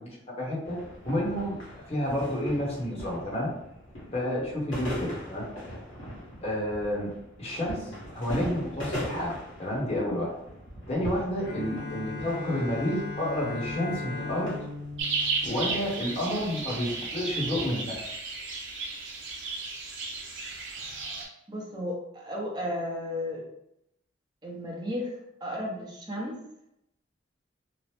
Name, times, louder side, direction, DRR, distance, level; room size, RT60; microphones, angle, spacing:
voice 1, 0.4-0.8 1.1-1.6 1.9-3.5 4.1-5.4 6.4-7.1 7.4-9.3 9.6-10.3 10.9-14.6 15.4-18.1, left 1 dB, 30° left, -5 dB, 0.9 m, -30 dB
sound 1, 0.6-18.1, equal, 75° left, 1.3 m, -42 dB
Bowed string instrument, 11.4-16.3, left 3 dB, 50° left, 0.5 m, -38 dB
sound 2, 15.0-21.2, right 4 dB, 70° right, 0.7 m, -34 dB
voice 2, 21.5-23.4 24.4-26.4, left 1 dB, 20° right, -3 dB, 0.7 m, -34 dB
2.9 x 2.0 x 3.2 m, 0.81 s
head